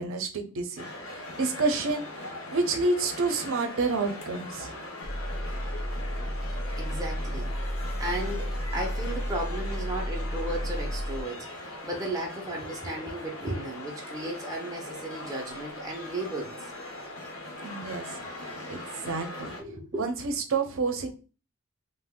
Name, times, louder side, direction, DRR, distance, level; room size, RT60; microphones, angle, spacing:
voice 1, 0.0-4.7 17.6-18.2 18.7-19.5 19.9-21.1, right 3 dB, 65° right, 6 dB, 0.6 m, -29 dB
sound 1, 0.8-19.6, left 1 dB, 70° left, 0.8 m, -40 dB
sound 2, 5.0-11.2, equal, 30° left, 0.5 m, -32 dB
voice 2, 6.7-7.5 8.0-16.5 19.6-20.1, right 1 dB, 15° right, -1 dB, 0.5 m, -35 dB
2.5 x 2.1 x 3.6 m, 0.34 s
head